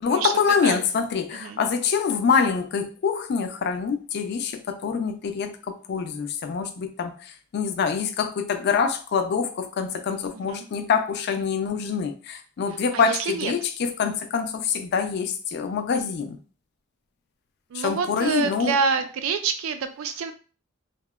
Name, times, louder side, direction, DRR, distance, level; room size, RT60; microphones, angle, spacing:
voice 1, 0.0-16.4 17.7-18.8, left 6 dB, 55° left, 0.3 m, -25 dB
voice 2, 12.9-13.5 17.7-20.3, right 5 dB, 85° right, 0.4 m, -27 dB
2.8 x 2.0 x 2.2 m
head